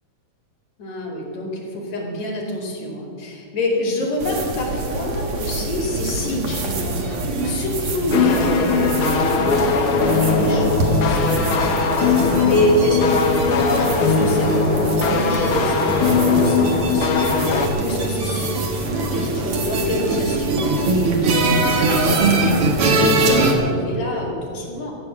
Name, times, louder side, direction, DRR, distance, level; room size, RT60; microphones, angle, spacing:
voice 1, 0.8-25.0, left 1 dB, 55° left, -3 dB, 3.5 m, -27 dB
sound 1, 4.2-23.5, right 2 dB, 50° right, 2.0 m, -23 dB
sound 2, 8.1-17.7, left 5 dB, 75° left, 1.2 m, -19 dB
15.0 x 8.9 x 7.2 m, 2.5 s
omnidirectional pair, 4.0 m